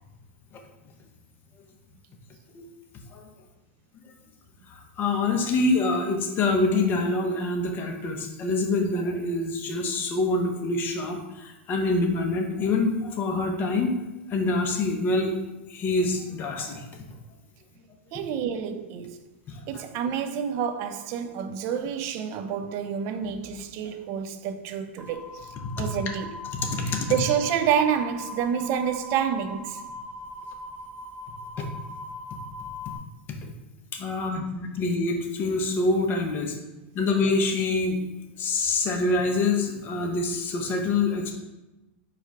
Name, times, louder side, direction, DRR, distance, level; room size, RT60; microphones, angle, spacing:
voice 1, 4.7-13.9 14.3-15.3 15.7-16.9 19.5-19.8 25.6-25.7 26.5-27.0 31.6-31.7 33.3-33.4 33.9-36.5 36.9-38.0 38.4-41.3, left 3 dB, 30° left, 0.7 m, -26 dB
voice 2, 18.1-19.2 19.7-26.3 26.8-29.8, right 8 dB, 40° right, 0.5 m, -28 dB
sound 1, 25.0-33.0, left 1 dB, 5° left, 0.9 m, -40 dB
4.6 x 2.3 x 4.6 m
hypercardioid pair, 130°, 7 cm